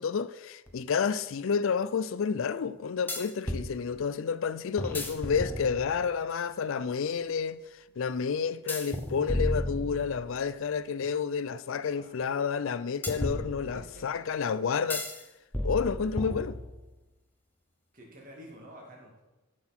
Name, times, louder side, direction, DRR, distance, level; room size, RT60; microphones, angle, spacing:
voice 1, 0.0-7.6 8.0-15.0 15.6-16.6, left 6 dB, 60° left, 0.4 m, -30 dB
sound 1, 0.7-0.8 3.1-3.7 4.8-6.1 8.7-10.4 13.0-14.0 14.9-15.2 15.5-16.9, left 1 dB, 10° left, 0.8 m, -33 dB
voice 2, 11.9-12.2 13.7-14.0 17.9-19.2, equal, 40° right, 2.3 m, -49 dB
12.5 x 6.1 x 4.4 m
head